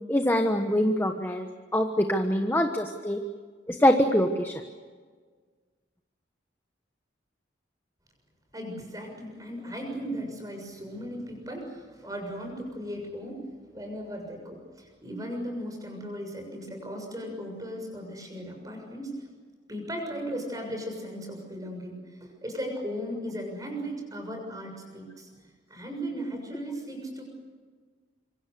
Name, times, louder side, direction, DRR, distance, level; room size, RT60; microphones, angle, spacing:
voice 1, 0.1-3.2 3.7-4.6, equal, 10° left, 4 dB, 1.2 m, -24 dB
voice 2, 8.5-13.4 13.7-19.2 19.7-27.2, equal, 20° right, 3 dB, 6.9 m, -37 dB
26.0 x 25.0 x 6.9 m, 1.5 s
head